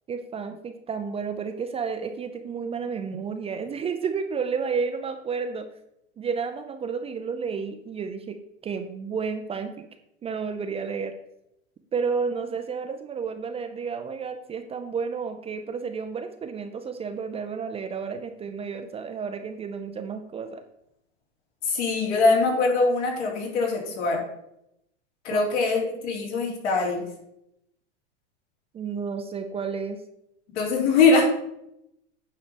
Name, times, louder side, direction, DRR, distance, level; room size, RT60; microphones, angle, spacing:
voice 1, 0.1-5.7 6.2-8.4 8.6-9.8 10.2-11.1 11.9-20.6 25.3-25.4 28.7-30.0, right 5 dB, 15° right, 7 dB, 0.5 m, -31 dB
voice 2, 21.6-24.2 25.2-27.1 30.5-31.3, left 3 dB, 70° left, -2 dB, 3.5 m, -22 dB
9.2 x 3.9 x 6.9 m, 0.80 s
hypercardioid pair, 125°, 35 cm